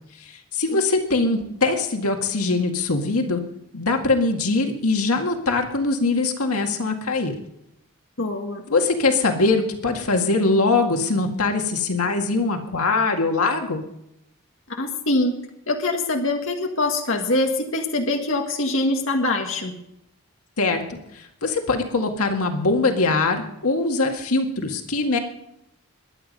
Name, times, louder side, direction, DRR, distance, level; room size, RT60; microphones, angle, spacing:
voice 1, 0.2-3.4 3.7-7.3 8.7-13.8 20.6-25.2, left 3 dB, 90° left, 4 dB, 1.9 m, -22 dB
voice 2, 8.2-8.6 14.8-15.3 15.7-19.7, left 2 dB, 65° left, 2 dB, 1.7 m, -23 dB
22.0 x 9.4 x 5.3 m, 0.80 s
head